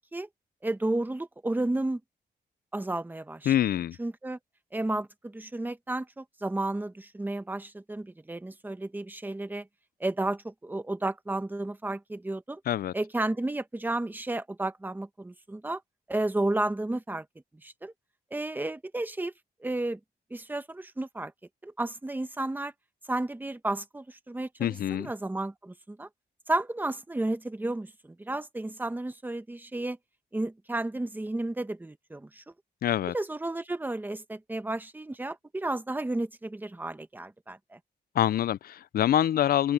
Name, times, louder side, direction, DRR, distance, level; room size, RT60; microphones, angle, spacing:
voice 1, 0.6-2.0 2.7-3.5 4.0-4.4 4.7-9.7 10.0-12.6 12.9-15.8 16.1-17.2 17.6-17.9 18.3-19.3 19.6-20.0 20.3-21.3 21.6-22.7 23.1-24.7 25.0-26.1 26.5-30.0 30.3-32.4 33.1-37.8, right 2 dB, 10° right, 1.0 m, -32 dB
voice 2, 3.5-4.0 12.7-12.9 24.6-25.1 32.8-33.1 38.2-39.7, left 11 dB, 65° left, 0.4 m, -25 dB
wide cardioid pair, 140°, 17 cm